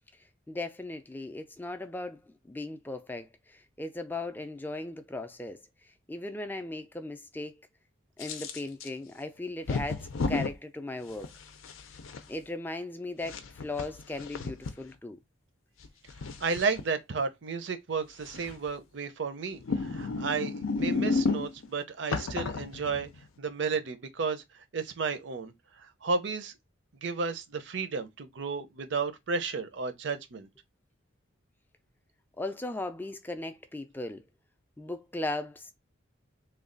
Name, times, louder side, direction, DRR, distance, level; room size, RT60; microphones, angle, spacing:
voice 1, 0.5-7.7 8.2-11.3 12.3-15.2 32.4-34.2 34.8-35.7, left 2 dB, 10° left, 0.4 m, -37 dB
sound 1, 8.2-8.9 9.7-10.5 11.2-12.2 13.2-14.7 15.8-16.8 18.3-18.7 19.5-21.7 22.1-23.2, left 4 dB, 85° left, 0.5 m, -32 dB
voice 2, 16.4-23.1 23.4-25.5 25.8-26.5 27.0-30.5, right 4 dB, 60° right, 0.6 m, -33 dB
3.2 x 2.3 x 3.7 m
head